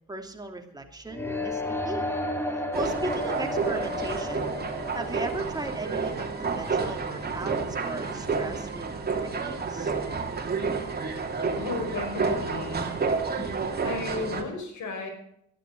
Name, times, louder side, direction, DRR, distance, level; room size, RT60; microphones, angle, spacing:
voice 1, 0.1-2.1 2.7-4.5 4.9-9.9, right 2 dB, 15° right, 2 dB, 3.0 m, -37 dB
sound 1, 1.1-7.0, left 1 dB, 10° left, 2.6 m, -33 dB
sound 2, 2.7-14.4, right 4 dB, 30° right, 2.8 m, -30 dB
voice 2, 11.6-12.8 13.4-13.6 13.8-15.1, left 3 dB, 75° left, 4 dB, 5.9 m, -34 dB
13.5 x 11.5 x 6.5 m, 0.69 s
cardioid pair, 90°, 30 cm